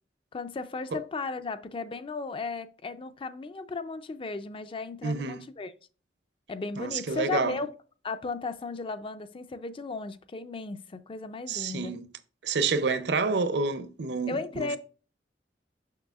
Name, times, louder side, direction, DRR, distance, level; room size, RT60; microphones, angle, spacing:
voice 1, 0.3-5.7 6.5-7.7 8.0-11.9 14.3-14.8, left 3 dB, 30° left, 0.4 m, -35 dB
voice 2, 5.0-5.4 6.8-7.6 11.5-12.1 12.4-14.8, right 4 dB, 70° right, 0.6 m, -29 dB
6.6 x 6.2 x 2.4 m
head